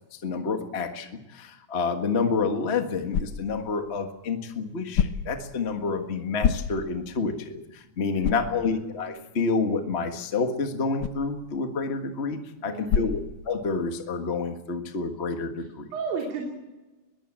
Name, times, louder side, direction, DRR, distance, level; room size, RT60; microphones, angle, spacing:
voice 1, 0.1-15.9, left 4 dB, 50° left, 5 dB, 0.7 m, -29 dB
sound 1, 2.2-14.0, left 8 dB, 80° left, 1.2 m, -33 dB
voice 2, 8.1-8.4 12.6-13.1 15.9-16.5, right 4 dB, 85° right, 0 dB, 4.5 m, -34 dB
21.5 x 15.5 x 8.8 m, 1.1 s
omnidirectional pair, 4.0 m